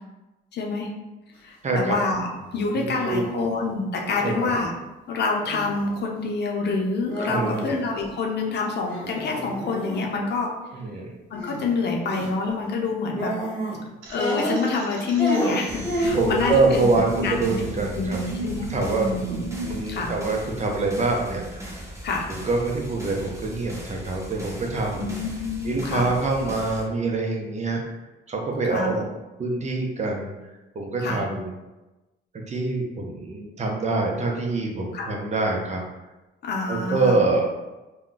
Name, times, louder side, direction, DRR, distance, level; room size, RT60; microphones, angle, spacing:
voice 1, 0.5-0.9 1.4-2.3 2.5-4.7 5.1-10.5 11.3-13.3 14.1-17.6 17.9-19.4 19.9-20.1 22.0-22.3 24.9-26.1 28.7-29.0 31.0-31.2 34.9-35.2 36.4-37.2, left 4 dB, 60° left, 0 dB, 0.6 m, -27 dB
voice 2, 1.6-2.0 2.7-3.5 4.2-4.5 7.3-7.7 10.7-11.2 16.2-18.2 18.7-21.8 22.3-25.1 25.6-27.8 28.3-29.0 29.4-30.3 30.7-31.5 32.3-35.8 36.7-37.5, right 3 dB, 35° right, 1 dB, 0.6 m, -25 dB
sound 1, 2.4-2.6 3.0-3.4 4.1-4.5 5.4-5.8 7.1-8.1 8.9-10.1 11.3-11.7 12.0-12.3 13.1-13.8 14.1-14.9 15.2-16.7 17.2-17.7, equal, 5° left, 1.2 m, -29 dB
sound 2, 14.0-19.8, right 2 dB, 80° right, 0.6 m, -35 dB
sound 3, 15.7-26.8, equal, 15° right, 1.1 m, -39 dB
2.3 x 2.2 x 3.8 m, 1.1 s
cardioid pair, 90°, 20 cm